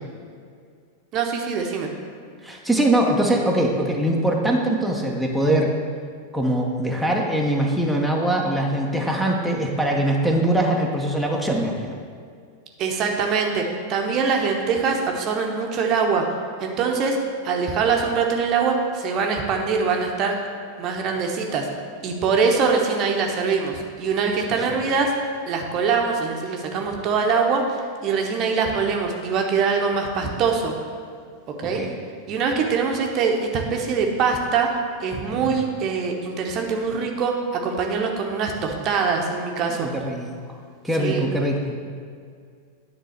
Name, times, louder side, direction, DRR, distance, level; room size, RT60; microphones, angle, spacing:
voice 1, 1.1-1.9 12.8-16.2 16.6-17.2 17.4-20.3 20.8-21.7 22.0-25.1 25.5-30.7 31.5-31.8 32.3-34.7 35.0-39.9 41.0-41.3, right 5 dB, 35° right, 2 dB, 1.0 m, -23 dB
voice 2, 2.4-5.7 6.3-12.0 31.6-31.9 35.3-35.5 39.8-40.3 40.8-41.8, right 1 dB, ahead, 0 dB, 1.0 m, -22 dB
10.0 x 3.9 x 6.6 m, 2.2 s
figure-of-eight pair, 90°, 0 cm